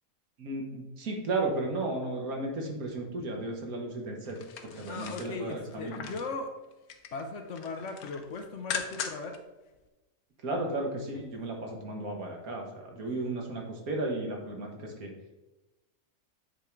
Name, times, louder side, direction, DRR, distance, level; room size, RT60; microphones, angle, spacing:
voice 1, 0.4-4.4 4.6-6.0 10.4-15.1, right 2 dB, 80° right, 1 dB, 1.8 m, -34 dB
sound 1, 4.3-6.3 6.7-7.2 7.5-9.4 9.7-9.8, left 7 dB, 85° left, 1.2 m, -39 dB
voice 2, 4.9-6.5 7.1-9.4 11.3-11.4, left 3 dB, 60° left, 5 dB, 1.0 m, -38 dB
8.4 x 3.7 x 4.5 m, 1.1 s
omnidirectional pair, 1.5 m